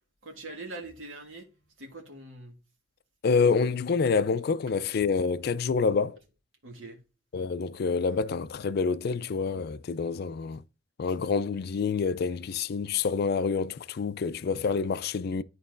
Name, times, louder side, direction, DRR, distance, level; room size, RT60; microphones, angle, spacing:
voice 1, 0.2-1.5 1.8-2.6 6.6-7.0, right 2 dB, 85° right, 1.5 m, -42 dB
voice 2, 3.2-6.2 7.3-10.6 11.0-15.4, left 5 dB, 55° left, 0.4 m, -27 dB
11.0 x 4.0 x 2.5 m
head